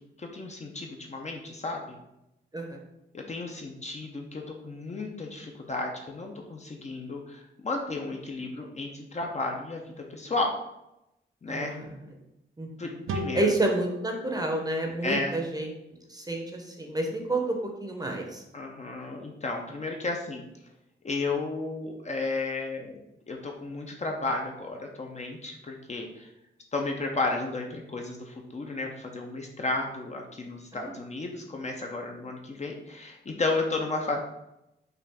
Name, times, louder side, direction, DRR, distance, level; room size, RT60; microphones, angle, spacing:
voice 1, 0.2-2.0 3.1-9.8 10.1-10.5 11.4-11.8 12.8-13.5 15.0-15.4 18.5-20.4 21.0-23.0 23.3-26.1 26.7-34.2, left 3 dB, 35° left, 1 dB, 0.6 m, -33 dB
voice 2, 11.5-12.1 12.6-13.0 13.3-15.7 16.1-18.4 30.7-31.0, right 2 dB, 20° right, 2 dB, 0.7 m, -30 dB
sound 1, 13.1-16.4, equal, 80° right, 0.6 m, -39 dB
5.5 x 2.4 x 3.5 m, 0.88 s
wide cardioid pair, 115°, 21 cm